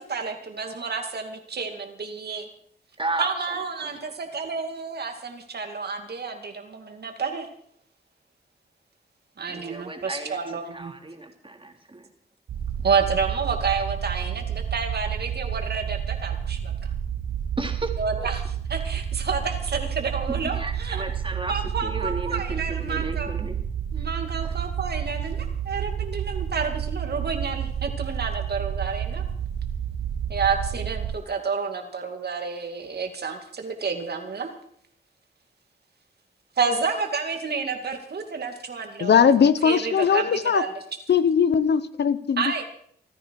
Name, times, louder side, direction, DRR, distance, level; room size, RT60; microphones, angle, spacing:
voice 1, 0.0-2.5 3.2-7.5 9.4-10.9 12.8-16.9 18.0-21.0 21.5-23.3 23.9-29.2 30.3-34.5 36.6-40.7 42.4-42.6, right 5 dB, 65° right, 5 dB, 2.5 m, -30 dB
voice 2, 3.0-3.3 4.0-4.1 9.5-10.4 10.7-12.1 17.6-17.9 18.2-18.3 20.4-23.6 24.4-24.5, right 2 dB, 30° right, 3 dB, 3.5 m, -34 dB
sound 1, 12.5-31.2, right 8 dB, 85° right, 0.7 m, -30 dB
voice 3, 39.0-40.6 41.1-42.5, left 7 dB, 75° left, 14 dB, 0.9 m, -20 dB
26.0 x 10.0 x 4.8 m, 0.65 s
cardioid pair, 55°, 18 cm